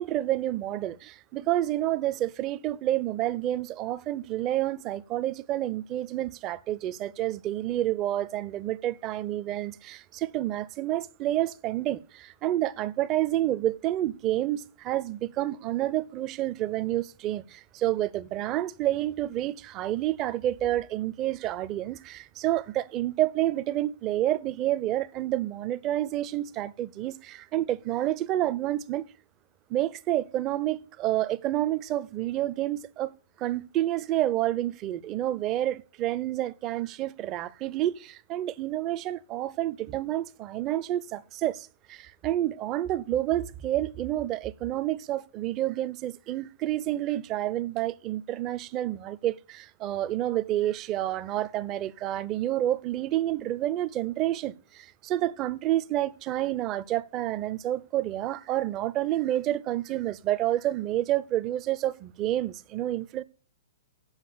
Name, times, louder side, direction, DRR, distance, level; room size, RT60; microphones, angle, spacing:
voice 1, 0.0-29.1 29.7-33.1 33.4-63.2, right 13 dB, 30° right, 0.6 m, -29 dB
8.1 x 7.6 x 6.7 m
figure-of-eight pair, 115°, 0 cm